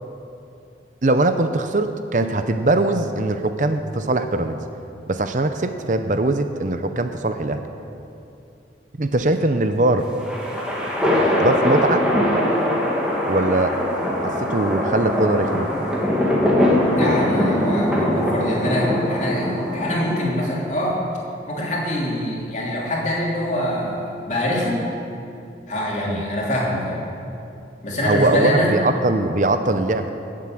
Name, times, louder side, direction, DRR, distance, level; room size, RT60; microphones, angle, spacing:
voice 1, 1.0-4.6 5.1-7.7 9.0-10.1 11.4-12.0 13.3-13.8 14.2-15.7 26.0-26.2 28.0-30.1, right 2 dB, 45° right, 8 dB, 0.6 m, -21 dB
sound 1, 10.0-20.5, left 1 dB, 5° right, 2.3 m, -21 dB
voice 2, 16.9-21.0 21.5-24.9 25.7-27.1 27.8-28.8, left 1 dB, 40° left, -4 dB, 3.1 m, -24 dB
18.0 x 7.6 x 7.6 m, 2.7 s
head